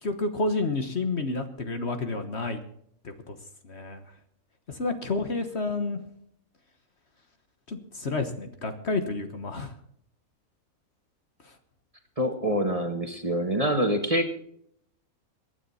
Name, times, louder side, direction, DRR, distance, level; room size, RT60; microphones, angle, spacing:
voice 1, 0.0-2.6 3.0-3.4 3.6-4.0 4.7-6.0 7.7-9.7 11.4-11.5, left 3 dB, 50° left, 7 dB, 1.5 m, -30 dB
voice 2, 12.2-14.4, equal, 25° right, 5 dB, 1.6 m, -26 dB
23.5 x 9.6 x 4.2 m, 0.69 s
omnidirectional pair, 1.6 m